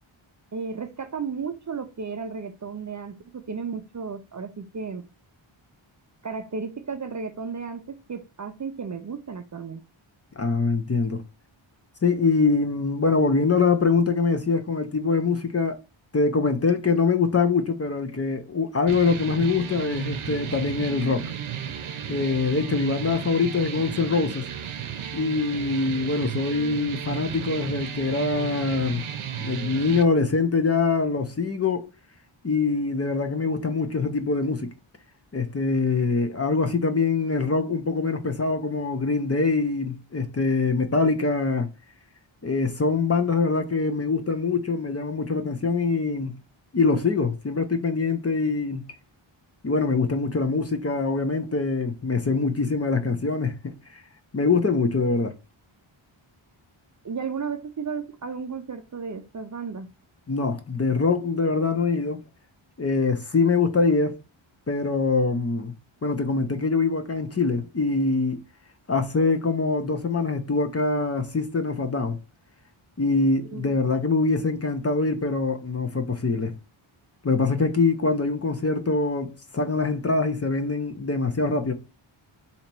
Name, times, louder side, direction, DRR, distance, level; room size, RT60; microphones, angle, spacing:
voice 1, 0.5-5.0 6.2-9.8 57.0-59.9 73.5-73.8, right 5 dB, 35° right, 0.4 m, -34 dB
voice 2, 10.4-11.2 12.0-15.8 16.1-21.3 22.1-24.5 25.1-29.0 29.4-31.9 32.4-34.7 35.3-41.7 42.4-46.4 46.7-48.9 49.6-54.0 54.3-55.3 60.3-62.2 62.8-64.2 64.7-65.7 66.0-68.4 68.9-72.2 73.0-76.5 77.2-81.7, left 4 dB, 30° left, 0.6 m, -24 dB
sound 1, 18.9-30.0, right 9 dB, 75° right, 0.7 m, -34 dB
4.1 x 2.8 x 4.4 m
wide cardioid pair, 145°, 50 cm